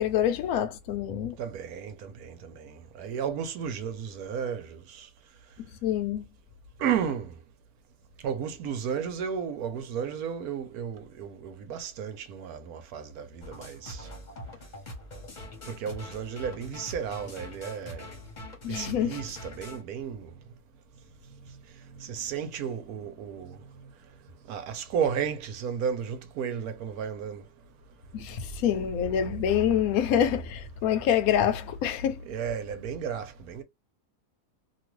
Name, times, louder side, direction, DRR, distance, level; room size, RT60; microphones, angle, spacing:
voice 1, 0.0-1.3 5.8-6.2 18.6-19.2 28.1-32.2, left 9 dB, 65° left, 1.0 m, -26 dB
voice 2, 1.4-5.1 6.8-7.3 8.2-14.1 15.7-18.1 18.7-20.3 22.0-23.6 24.5-27.4 32.2-33.6, right 7 dB, 70° right, 1.1 m, -33 dB
sound 1, 13.4-19.8, left 1 dB, 35° left, 0.9 m, -43 dB
2.9 x 2.4 x 3.0 m
omnidirectional pair, 1.8 m